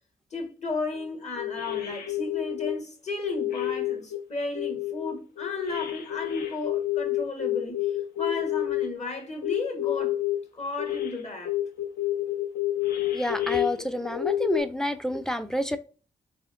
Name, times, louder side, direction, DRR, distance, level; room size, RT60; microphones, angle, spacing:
voice 1, 0.3-10.2 10.5-11.5, left 2 dB, 45° left, 1.3 m, -34 dB
sound 1, 0.9-1.1 1.4-2.7 3.3-4.2 4.6-8.9 9.4-10.4 10.8-11.2 11.5-14.6, left 14 dB, 75° left, 0.6 m, -29 dB
voice 2, 13.1-15.8, equal, 5° left, 0.4 m, -29 dB
4.2 x 2.6 x 2.5 m
supercardioid pair, 40°, 16 cm